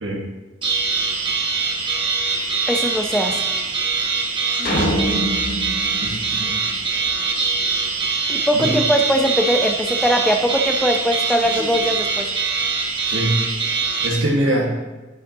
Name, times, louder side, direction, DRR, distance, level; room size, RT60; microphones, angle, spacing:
sound 1, 0.6-14.1, right 4 dB, 25° right, 1.3 m, -23 dB
voice 1, 2.7-3.4 8.3-12.3, equal, 5° left, 4 dB, 0.6 m, -20 dB
sound 2, 4.6-7.1, equal, 50° left, 1.2 m, -25 dB
voice 2, 6.0-6.6 8.2-8.8 13.1-13.4 14.0-14.7, right 1 dB, 85° right, -3 dB, 1.6 m, -23 dB
11.0 x 6.4 x 2.8 m, 1.2 s
head